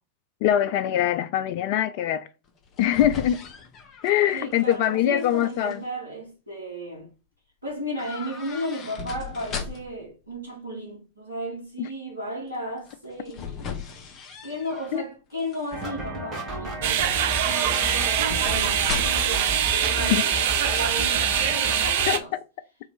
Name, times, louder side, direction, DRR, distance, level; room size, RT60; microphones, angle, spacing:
voice 1, 0.4-2.3 2.8-3.4 4.0-5.8 14.9-15.0 20.1-20.2 22.1-22.2, left 11 dB, 45° left, 0.4 m, -23 dB
sound 1, 2.5-4.9 5.2-5.8 8.0-10.1 12.8-15.0 15.4-15.9 17.3-19.4 19.7-19.8, left 6 dB, 30° left, 0.8 m, -37 dB
voice 2, 4.3-7.1 7.6-13.8 14.4-22.3, equal, 80° right, 1.4 m, -35 dB
sound 2, 15.7-22.2, equal, 25° right, 1.4 m, -32 dB
sound 3, 16.8-22.2, right 10 dB, 55° right, 0.5 m, -24 dB
3.0 x 3.0 x 4.1 m
figure-of-eight pair, 90°, 0 cm